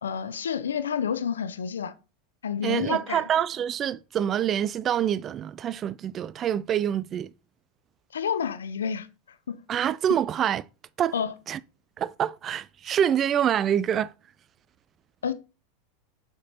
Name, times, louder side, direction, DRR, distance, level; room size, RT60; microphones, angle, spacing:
voice 1, 0.0-1.9 2.4-3.2 8.1-9.1 9.5-9.6 11.1-11.3 15.2-15.3, left 7 dB, 80° left, 0.6 m, -29 dB
voice 2, 2.6-7.3 9.7-10.6 11.0-11.1 11.5-11.6 12.0-14.1, right 9 dB, 35° right, 0.3 m, -26 dB
8.1 x 5.1 x 2.9 m
hypercardioid pair, 90°, 0 cm